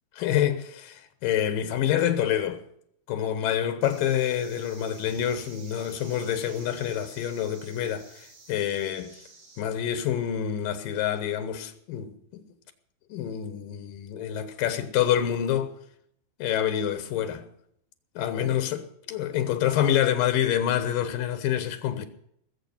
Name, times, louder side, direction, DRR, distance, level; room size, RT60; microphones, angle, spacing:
voice 1, 0.2-2.6 3.1-9.2 9.6-12.4 13.1-15.7 16.4-17.5 18.2-22.1, left 10 dB, 90° left, 2.8 m, -27 dB
sound 1, 3.8-9.6, right 3 dB, 60° right, 3.8 m, -51 dB
19.5 x 7.7 x 7.1 m
omnidirectional pair, 3.8 m